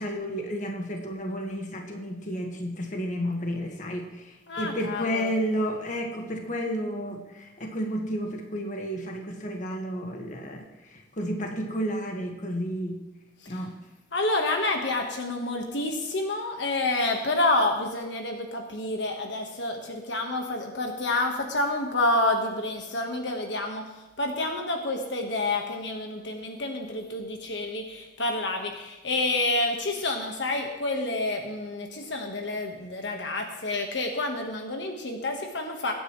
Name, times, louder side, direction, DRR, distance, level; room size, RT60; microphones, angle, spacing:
voice 1, 0.0-10.6 10.9-13.0 13.5-13.7, equal, 45° left, 2 dB, 1.7 m, -31 dB
voice 2, 4.5-5.3 13.4-13.6 14.1-23.9 24.2-35.9, left 2 dB, 70° left, 3 dB, 1.4 m, -28 dB
23.0 x 9.5 x 3.2 m, 1.0 s
head